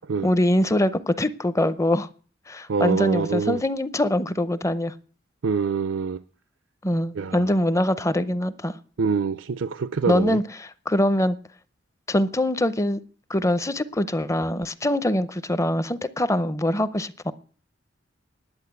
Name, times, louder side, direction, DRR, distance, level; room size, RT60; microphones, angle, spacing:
voice 1, 0.2-2.1 2.5-4.9 6.8-8.8 10.1-11.4 12.1-13.0 13.3-17.3, left 1 dB, 15° left, 0.6 m, -23 dB
voice 2, 2.7-3.6 5.4-6.2 7.2-7.5 9.0-10.4, right 5 dB, 75° right, 0.5 m, -25 dB
10.5 x 8.2 x 8.1 m
head